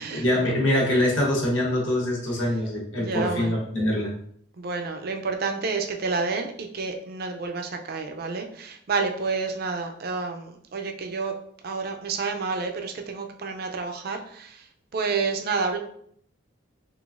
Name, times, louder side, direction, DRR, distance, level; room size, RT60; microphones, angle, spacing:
voice 1, 0.0-4.1, left 1 dB, 65° left, -3 dB, 1.0 m, -24 dB
voice 2, 3.0-3.5 4.6-11.4 11.6-14.7 14.9-15.8, right 4 dB, 45° right, 4 dB, 0.4 m, -29 dB
3.7 x 3.2 x 2.4 m, 0.65 s
head